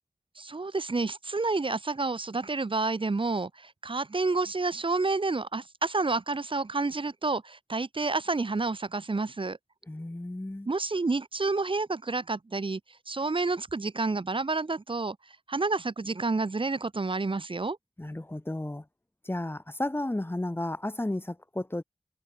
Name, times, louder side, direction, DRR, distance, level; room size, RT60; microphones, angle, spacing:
voice 1, 0.4-9.6 10.7-12.8 13.1-15.2 15.5-17.8, right 3 dB, 50° right, 1.5 m, -29 dB
voice 2, 9.9-10.7 18.0-18.8 19.2-21.8, left 1 dB, 20° left, 1.5 m, -33 dB
wide cardioid pair, 75°, 11 cm